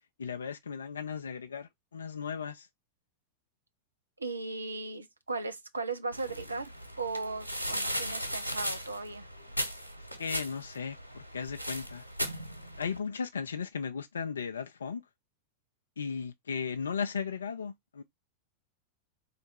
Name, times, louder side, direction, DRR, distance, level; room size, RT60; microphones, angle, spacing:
voice 1, 0.2-2.7 10.0-12.0 12.8-15.0 16.0-18.0, left 6 dB, 70° left, 0.4 m, -36 dB
voice 2, 4.2-6.7 7.0-9.3, right 3 dB, 80° right, 0.7 m, -37 dB
sound 1, 6.1-13.0, equal, 90° left, 1.0 m, -37 dB
3.6 x 3.3 x 4.3 m
figure-of-eight pair, 90°, 0 cm